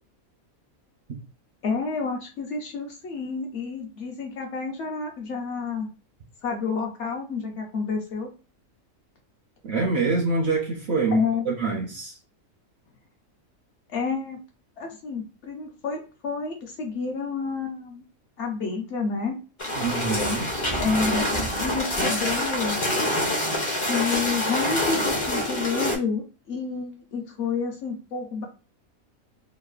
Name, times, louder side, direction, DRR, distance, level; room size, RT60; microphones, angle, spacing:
voice 1, 1.6-5.9 6.4-8.3 11.1-11.5 13.9-14.4 14.8-18.0 18.4-19.4 20.8-22.8 23.9-28.5, left 5 dB, 65° left, 0.8 m, -29 dB
voice 2, 9.6-12.2 19.8-20.5, right 4 dB, 65° right, 0.7 m, -26 dB
sound 1, 19.6-26.0, left 1 dB, 35° left, 0.4 m, -26 dB
3.0 x 2.0 x 2.3 m
omnidirectional pair, 1.5 m